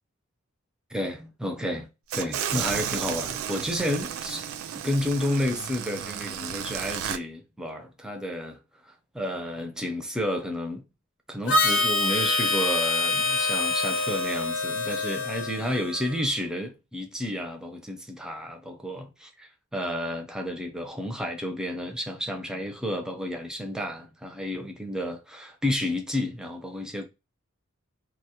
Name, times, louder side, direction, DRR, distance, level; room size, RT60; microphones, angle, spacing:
voice 1, 0.9-1.9 2.1-4.5 4.7-8.6 9.2-10.9 11.3-27.1, left 1 dB, 5° right, 0.4 m, -31 dB
sound 1, 2.1-7.2, right 9 dB, 75° right, 0.3 m, -33 dB
Harmonica, 11.5-16.2, left 2 dB, 60° left, 0.6 m, -26 dB
2.2 x 2.1 x 2.7 m
head